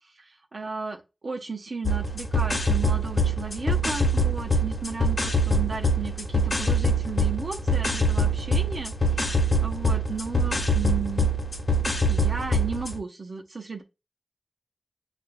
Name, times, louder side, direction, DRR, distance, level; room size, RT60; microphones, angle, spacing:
voice 1, 0.2-11.3 12.1-13.8, right 4 dB, 85° right, 0.7 m, -35 dB
sound 1, 1.8-13.0, equal, 75° left, 1.1 m, -24 dB
6.8 x 2.5 x 2.3 m
wide cardioid pair, 55°, 0 cm